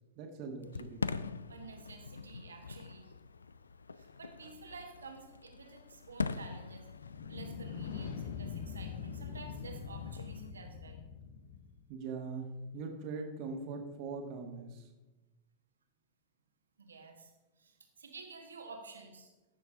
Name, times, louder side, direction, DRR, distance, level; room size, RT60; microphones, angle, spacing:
voice 1, 0.1-1.1 11.9-14.9, right 4 dB, 45° right, 3 dB, 1.6 m, -41 dB
Fireworks, 0.6-10.5, left 4 dB, 75° left, 0.3 m, -43 dB
voice 2, 1.5-3.1 3.9-6.9 7.3-11.0 16.8-19.3, right 4 dB, 70° right, 5 dB, 1.4 m, -51 dB
sound 1, 7.0-11.8, left 7 dB, 60° left, 0.7 m, -43 dB
14.0 x 6.6 x 3.7 m, 1.1 s
figure-of-eight pair, 90°, 0 cm